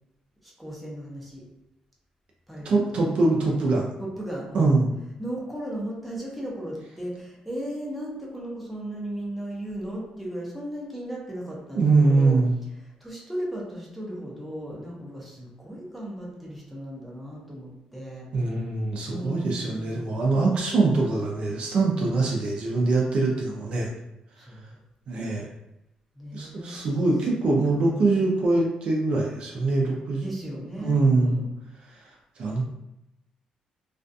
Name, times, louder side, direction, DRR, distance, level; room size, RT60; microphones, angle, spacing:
voice 1, 0.4-1.4 2.5-3.1 4.0-4.7 5.2-12.4 12.7-18.3 19.0-20.0 20.3-21.0 24.4-24.8 26.1-26.8 30.2-31.5, right 1 dB, ahead, -4 dB, 0.6 m, -36 dB
voice 2, 2.6-3.9 4.5-4.9 11.8-12.5 18.3-23.9 25.1-25.5 26.3-30.2 30.8-31.4 31.9-32.0 32.4-32.6, right 3 dB, 50° right, -1 dB, 0.4 m, -23 dB
2.4 x 2.3 x 2.5 m, 0.90 s
cardioid pair, 150°, 2 cm